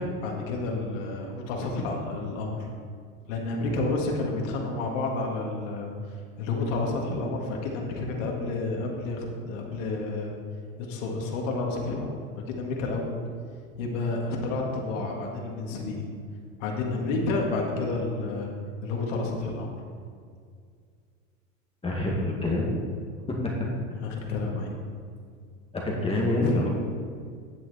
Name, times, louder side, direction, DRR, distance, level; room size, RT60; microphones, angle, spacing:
voice 1, 0.0-2.7 3.3-5.9 6.4-10.3 10.9-12.2 12.5-13.1 13.8-16.1 16.6-18.5 18.8-19.7 24.0-24.7 26.4-26.7, left 3 dB, 70° left, 0 dB, 1.9 m, -30 dB
voice 2, 21.8-22.7 23.3-23.5 25.8-26.7, left 1 dB, 15° left, -2 dB, 2.0 m, -26 dB
9.6 x 7.9 x 4.2 m, 2.1 s
supercardioid pair, 110°, 40 cm